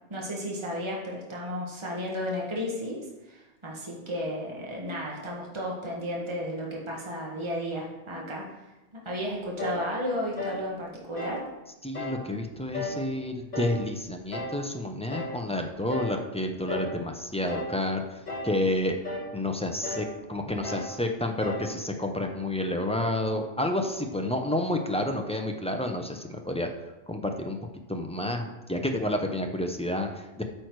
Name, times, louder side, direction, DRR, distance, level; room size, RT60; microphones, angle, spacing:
voice 1, 0.1-8.6 8.9-11.4, equal, 25° right, -3 dB, 1.6 m, -33 dB
sound 1, 9.6-9.9 10.4-10.7 11.2-11.5 11.9-12.2 12.7-13.1 13.5-13.8 14.3-14.6 15.1-15.4 15.9-16.2 16.7-17.0 17.5-17.8 18.3-18.6 19.0-19.3 19.8-20.1 20.6-20.9 21.4-21.7, left 1 dB, 35° left, 1.7 m, -34 dB
voice 2, 11.8-19.0 19.3-26.7 27.1-27.6 27.9-30.4, left 1 dB, 5° left, 3 dB, 0.6 m, -30 dB
8.9 x 6.3 x 4.7 m, 1.0 s
omnidirectional pair, 1.3 m